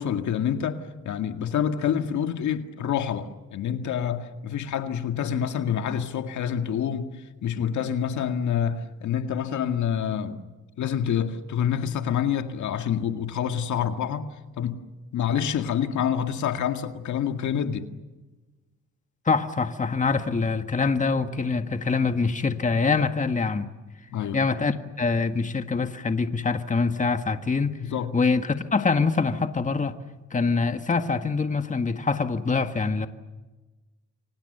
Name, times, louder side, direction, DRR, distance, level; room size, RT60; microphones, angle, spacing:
voice 1, 0.0-10.4 10.8-14.3 14.6-14.8 15.1-17.9 24.1-24.4 27.8-28.2, left 8 dB, 70° left, 6 dB, 2.1 m, -27 dB
voice 2, 19.2-23.7 24.3-27.8 28.1-30.0 30.3-33.1, left 4 dB, 25° left, 7 dB, 1.7 m, -24 dB
29.5 x 24.5 x 6.8 m, 1.2 s
cardioid pair, 90°, 30 cm